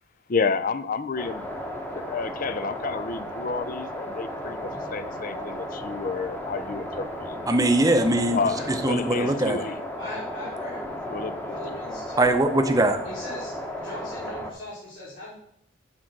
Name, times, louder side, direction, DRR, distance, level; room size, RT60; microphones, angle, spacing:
voice 1, 0.3-1.5 1.9-7.4 8.3-8.6 8.9-9.8 11.1-11.8, left 4 dB, 40° left, 13 dB, 0.4 m, -30 dB
sound 1, 1.2-14.5, equal, 10° left, 1.0 m, -34 dB
voice 2, 7.5-8.4 8.7-9.6 12.2-13.0, right 1 dB, 15° right, 6 dB, 0.7 m, -21 dB
voice 3, 10.0-10.9 11.5-12.2 13.0-15.3, left 1 dB, 60° left, -11 dB, 4.1 m, -39 dB
8.7 x 4.4 x 6.0 m, 0.70 s
head